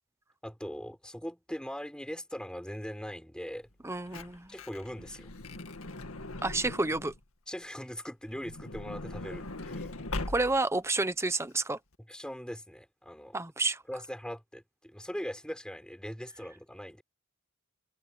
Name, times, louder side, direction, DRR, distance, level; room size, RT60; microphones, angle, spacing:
voice 1, 0.4-3.7 4.5-5.3 7.5-9.9 12.1-13.4 13.9-17.0, equal, 5° left, 5.1 m, -40 dB
Truck / Door, 3.7-7.2 8.3-10.8 11.5-11.6 11.8-11.9, left 2 dB, 75° left, 2.0 m, -40 dB
voice 2, 3.8-4.5 6.4-7.1 10.3-11.8 13.3-13.8, right 2 dB, 10° right, 0.9 m, -30 dB
head